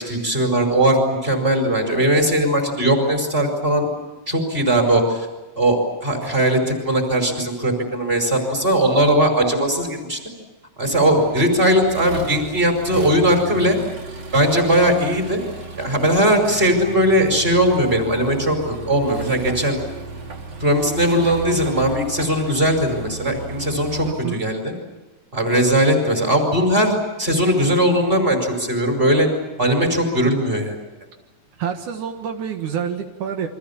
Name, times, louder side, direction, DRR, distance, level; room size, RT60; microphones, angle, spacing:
voice 1, 0.0-3.9 4.3-5.3 5.6-10.2 10.8-13.8 14.3-15.4 15.8-19.8 20.6-24.7 25.3-29.3 29.6-30.8, right 1 dB, 15° right, 4 dB, 5.4 m, -19 dB
Accelerating revving vroom, 10.9-24.1, right 4 dB, 40° right, 2.8 m, -34 dB
voice 2, 24.1-24.4 31.6-33.5, right 8 dB, 80° right, 5 dB, 3.1 m, -27 dB
29.5 x 24.5 x 7.3 m, 1.1 s
omnidirectional pair, 3.5 m